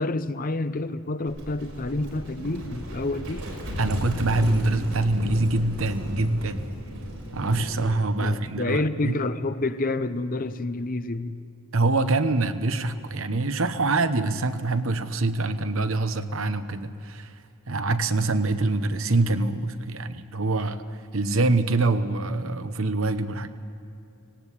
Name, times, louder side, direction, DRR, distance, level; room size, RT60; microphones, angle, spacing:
voice 1, 0.0-3.5 8.2-11.4, left 2 dB, 40° left, 12 dB, 0.7 m, -28 dB
Livestock farm animals working animals, 1.3-7.9, equal, 90° right, 5.7 m, -34 dB
voice 2, 3.8-6.7 7.3-9.2 11.7-17.3 17.7-20.8 21.1-23.5, right 2 dB, 70° right, 10 dB, 1.0 m, -25 dB
19.0 x 18.0 x 8.4 m, 2.7 s
head